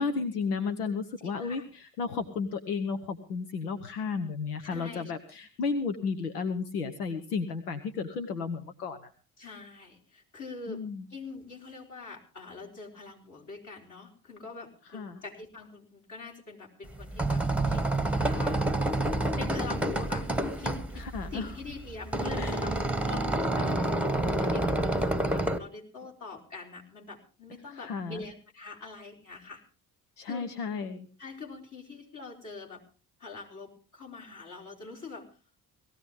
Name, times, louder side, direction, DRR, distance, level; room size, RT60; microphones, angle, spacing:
voice 1, 0.0-9.1 10.7-11.0 14.9-15.2 21.0-21.5 22.4-22.6 27.7-28.2 30.2-31.1, left 5 dB, 90° left, 8 dB, 0.9 m, -33 dB
voice 2, 1.2-1.7 4.6-5.1 9.4-10.8 11.1-17.8 18.2-18.6 19.4-20.3 20.6-29.6 30.2-30.5 31.2-32.8 33.2-35.4, left 4 dB, 40° left, 0 dB, 4.5 m, -44 dB
sound 1, 16.9-25.6, right 1 dB, 5° right, 1.2 m, -28 dB
18.5 x 15.0 x 3.6 m, 0.34 s
hypercardioid pair, 50°, 44 cm